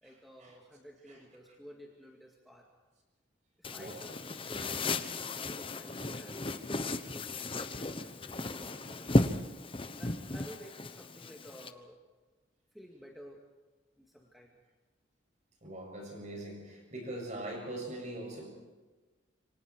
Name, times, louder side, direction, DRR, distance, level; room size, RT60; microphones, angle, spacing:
voice 1, 0.0-2.7 3.6-9.1 9.7-12.0 12.7-13.4 14.0-14.6, equal, ahead, -1 dB, 2.2 m, -53 dB
sound 1, 3.6-11.7, left 2 dB, 25° left, 1.0 m, -34 dB
voice 2, 3.7-4.2 4.5-4.6 15.6-18.5, right 1 dB, 40° right, 1 dB, 7.3 m, -42 dB
28.0 x 25.0 x 4.7 m, 1.3 s
head